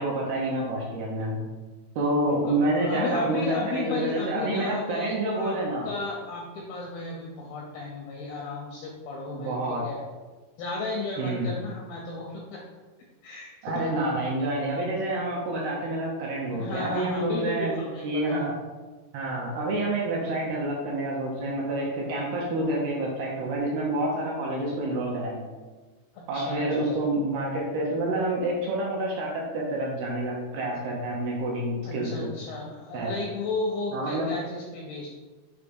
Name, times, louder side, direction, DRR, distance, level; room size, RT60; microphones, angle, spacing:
voice 1, 0.0-1.4 2.0-5.9 9.3-9.8 11.2-11.5 13.6-17.8 18.0-18.5 19.1-25.5 26.3-32.3 32.9-33.1 33.9-34.3, right 1 dB, 75° right, -3 dB, 2.5 m, -28 dB
voice 2, 2.2-5.6 5.8-10.0 10.6-12.6 13.2-13.9 16.5-18.5 20.2-20.3 26.1-27.0 31.8-35.1, left 3 dB, 80° left, -2 dB, 2.2 m, -34 dB
6.8 x 3.3 x 5.3 m, 1.3 s
omnidirectional pair, 5.3 m